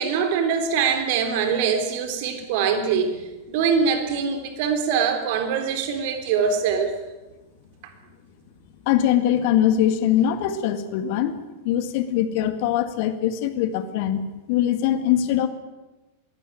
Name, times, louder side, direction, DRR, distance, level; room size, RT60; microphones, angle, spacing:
voice 1, 0.0-6.9, right 6 dB, 50° right, 6 dB, 3.6 m, -23 dB
voice 2, 8.8-11.4 11.6-14.2 14.5-15.5, left 11 dB, 45° left, 10 dB, 1.9 m, -22 dB
21.5 x 17.0 x 9.0 m, 1.1 s
figure-of-eight pair, 90°, 0 cm